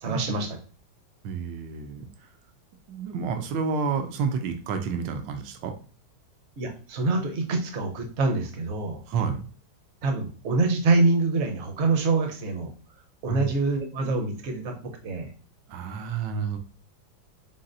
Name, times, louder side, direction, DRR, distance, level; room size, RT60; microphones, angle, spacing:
voice 1, 0.0-0.6 6.6-9.0 10.0-12.7 13.2-15.3, right 3 dB, 55° right, 3 dB, 0.8 m, -25 dB
voice 2, 1.2-2.0 2.9-5.7 9.1-9.4 13.3-13.5 15.7-16.6, right 5 dB, 80° right, 6 dB, 1.3 m, -29 dB
4.1 x 3.9 x 2.5 m, 0.39 s
omnidirectional pair, 2.1 m